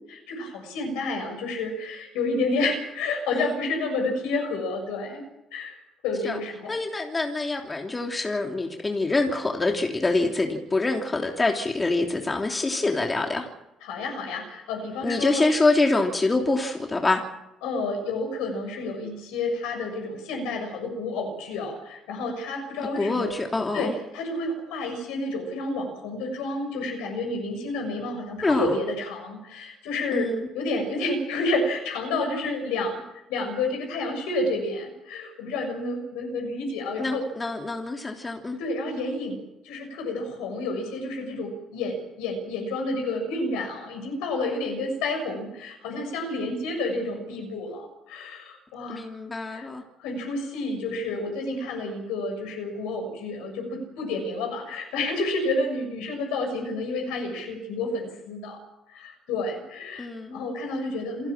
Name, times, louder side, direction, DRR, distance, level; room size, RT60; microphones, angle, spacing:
voice 1, 0.1-5.2 5.5-5.7 6.0-6.7 13.8-15.5 17.6-23.4 23.7-30.3 30.5-33.0 33.3-37.2 38.6-39.4 39.6-49.0 49.5-49.7 50.0-58.6 58.9-60.1 60.3-61.3, left 2 dB, 75° left, 3 dB, 7.0 m, -30 dB
voice 2, 6.7-13.5 15.0-17.2 22.9-24.0 28.4-28.7 30.1-30.5 37.0-38.6 48.9-49.8 60.0-60.4, left 2 dB, 25° left, 2 dB, 3.2 m, -25 dB
28.5 x 10.5 x 8.8 m, 0.91 s
hypercardioid pair, 50°, 0 cm